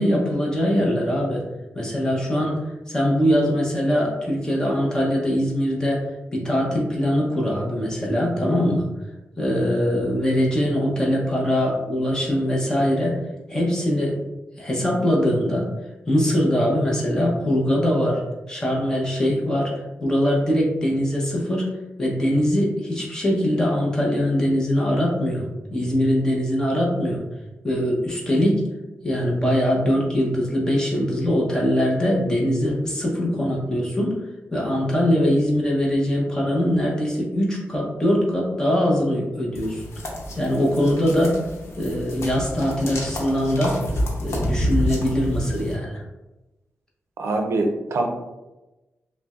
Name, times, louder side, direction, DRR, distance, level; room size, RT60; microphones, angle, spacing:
voice 1, 0.0-1.4 1.7-6.1 6.3-8.8 9.4-13.2 13.5-14.2 14.6-15.7 16.1-18.2 18.5-21.7 22.0-25.4 25.7-27.2 27.6-28.7 29.0-34.2 34.5-40.1 40.3-41.4 41.8-43.8 44.2-46.0, equal, 15° left, -3 dB, 0.8 m, -22 dB
sound 1, 39.5-45.7, equal, 80° left, 0.8 m, -29 dB
voice 2, 47.2-48.1, right 2 dB, 90° right, 3 dB, 0.5 m, -23 dB
5.6 x 2.1 x 2.4 m, 1.0 s
wide cardioid pair, 180°, 5 cm